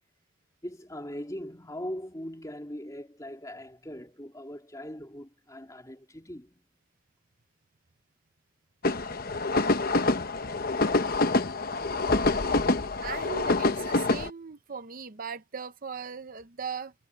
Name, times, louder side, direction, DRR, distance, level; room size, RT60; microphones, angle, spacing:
voice 1, 0.6-6.6, equal, 15° left, 2.8 m, -40 dB
sound 1, 8.8-14.3, left 2 dB, 45° left, 1.0 m, -26 dB
voice 2, 13.0-16.9, right 6 dB, 45° right, 0.7 m, -38 dB
head